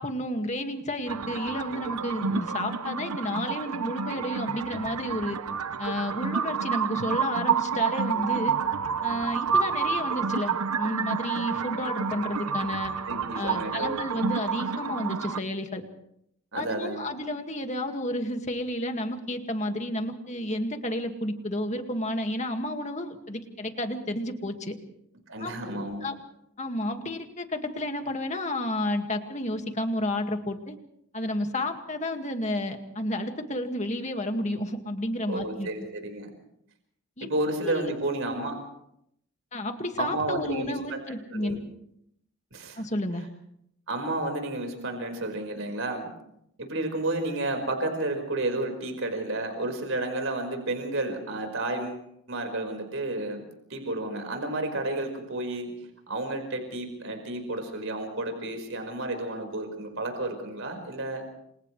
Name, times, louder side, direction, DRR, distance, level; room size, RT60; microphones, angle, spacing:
voice 1, 0.0-5.4 5.8-8.6 9.0-12.9 13.3-15.8 16.6-24.8 25.4-26.2 26.6-30.8 31.1-35.7 37.2-37.3 37.6-37.9 39.5-41.6 42.8-43.3, left 1 dB, 30° left, 5 dB, 2.0 m, -31 dB
sound 1, 1.1-15.4, right 6 dB, 85° right, 0.8 m, -29 dB
voice 2, 13.1-14.0 16.5-17.1 25.3-26.1 35.3-36.3 37.2-38.6 40.0-41.6 42.5-42.8 43.9-46.1 46.6-53.4 53.7-61.3, right 2 dB, 60° right, 4 dB, 5.1 m, -31 dB
29.5 x 27.0 x 3.3 m, 0.73 s
head